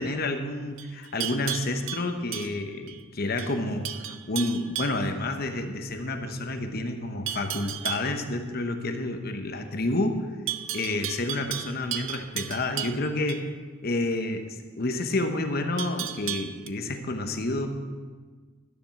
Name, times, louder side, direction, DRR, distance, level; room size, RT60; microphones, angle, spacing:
voice 1, 0.0-3.9 4.3-10.2 10.7-13.5 13.8-14.4 14.8-17.7, left 2 dB, 45° left, 6 dB, 1.0 m, -29 dB
Livestock farm animals working animals, 0.8-3.0 3.4-3.6 3.8-5.1 7.3-8.1 10.5-13.4 15.8-16.7, right 12 dB, 65° right, 0.6 m, -35 dB
12.5 x 7.3 x 5.9 m, 1.4 s
head